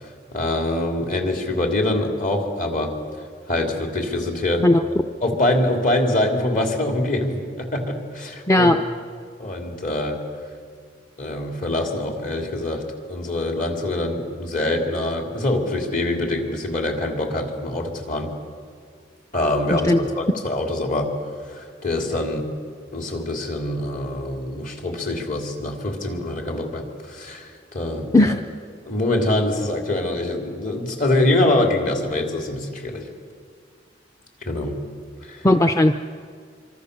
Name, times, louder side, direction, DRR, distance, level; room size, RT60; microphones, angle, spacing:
voice 1, 0.3-3.0 3.5-4.7 5.2-8.7 9.4-10.2 11.2-12.8 13.1-18.3 19.3-21.1 21.5-22.5 22.9-28.3 28.9-33.0 34.5-34.8 35.2-35.4, left 1 dB, 50° left, 3 dB, 3.5 m, -24 dB
voice 2, 8.5-8.8 19.7-20.0 28.1-28.4 35.4-35.9, left 1 dB, 15° left, 6 dB, 0.6 m, -16 dB
25.5 x 25.5 x 6.9 m, 2.1 s
head